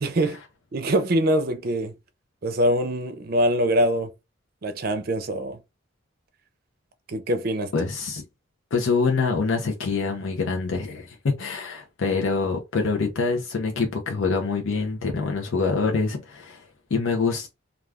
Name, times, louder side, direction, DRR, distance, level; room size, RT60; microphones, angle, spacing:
voice 1, 0.0-0.4 0.7-2.0 2.4-4.1 4.6-5.6 7.1-7.7, right 1 dB, 50° right, 0.5 m, -23 dB
voice 2, 7.7-8.2 8.7-16.6 16.9-17.5, left 4 dB, 85° left, 0.6 m, -25 dB
2.3 x 2.3 x 3.3 m
head